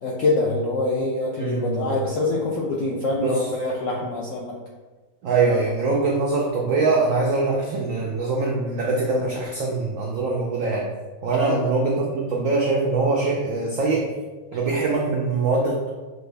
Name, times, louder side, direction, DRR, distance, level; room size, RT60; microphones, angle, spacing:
voice 1, 0.0-4.6 11.4-11.6, left 2 dB, 90° left, -3 dB, 0.6 m, -25 dB
voice 2, 1.4-1.8 3.2-3.3 5.2-10.9 11.2-14.1 14.5-15.9, right 3 dB, 85° right, -1 dB, 0.7 m, -23 dB
6.3 x 2.4 x 3.2 m, 1.3 s
omnidirectional pair, 2.1 m